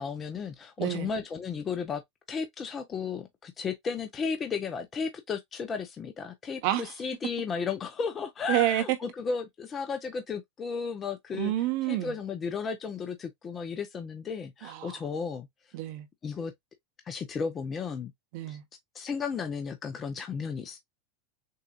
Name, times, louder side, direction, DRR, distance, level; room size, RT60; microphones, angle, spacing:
voice 1, 0.0-2.0 2.3-11.5 11.8-15.5 16.2-16.5 17.1-18.1 18.5-18.6 18.9-20.8, left 5 dB, 30° left, 0.9 m, -34 dB
voice 2, 0.8-1.1 6.6-6.8 8.5-9.0 11.3-12.1 14.6-15.0 15.7-16.1 18.3-18.6, right 15 dB, 65° right, 1.2 m, -28 dB
6.6 x 2.7 x 2.4 m
hypercardioid pair, 105°, 0 cm